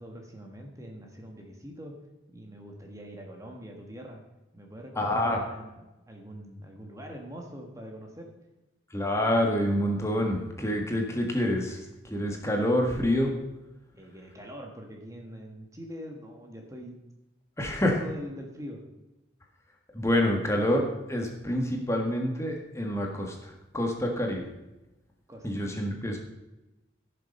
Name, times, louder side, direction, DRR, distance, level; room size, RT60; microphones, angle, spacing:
voice 1, 0.0-2.0 2.3-4.2 4.5-8.3 13.9-17.0 17.8-18.8 25.3-25.7, equal, 15° right, 1 dB, 1.5 m, -43 dB
voice 2, 4.9-5.4 8.9-13.3 17.6-18.0 19.9-24.5 25.4-26.2, left 1 dB, 15° left, 1 dB, 1.7 m, -27 dB
16.0 x 6.9 x 5.4 m, 1.0 s
head